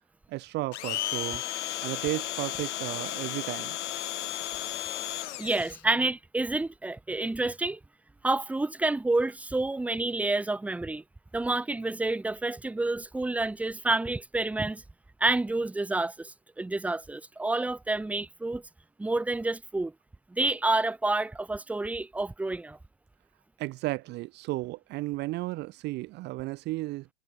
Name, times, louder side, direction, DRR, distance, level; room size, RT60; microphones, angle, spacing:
voice 1, 0.3-1.4 1.8-3.8 23.6-27.1, right 19 dB, 30° right, 1.9 m, -34 dB
Domestic sounds home sounds, 0.7-5.8, left 14 dB, 75° left, 1.4 m, -34 dB
voice 2, 5.4-7.8 8.2-11.0 11.3-14.8 15.2-18.6 19.0-19.9 20.3-22.8, right 2 dB, 5° right, 2.7 m, -29 dB
supercardioid pair, 160°, 35 cm